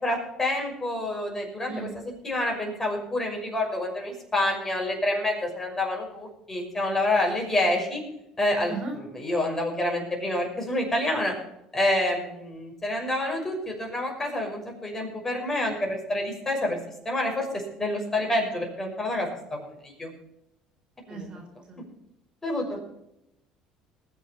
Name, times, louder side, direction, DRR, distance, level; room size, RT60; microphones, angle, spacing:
voice 1, 0.0-1.9 2.2-8.0 8.4-11.3 11.7-16.8 17.0-17.5 17.8-20.1 21.1-21.3 21.7-21.8 22.4-22.8, left 1 dB, 20° left, 0 dB, 6.0 m, -28 dB
voice 2, 21.1-21.8, right 4 dB, 45° right, 2 dB, 4.0 m, -36 dB
20.5 x 7.2 x 5.8 m, 0.84 s
hypercardioid pair, 70°, 2 cm